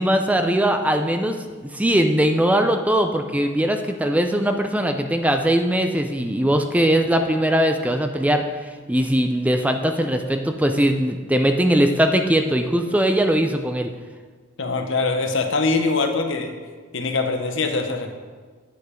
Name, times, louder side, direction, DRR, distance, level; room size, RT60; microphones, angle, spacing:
voice 1, 0.0-1.4 1.6-8.4 8.9-13.9, right 1 dB, 5° right, 6 dB, 0.4 m, -20 dB
voice 2, 14.6-16.5 16.9-18.1, left 3 dB, 65° left, 5 dB, 1.0 m, -23 dB
9.4 x 7.0 x 5.1 m, 1.5 s
head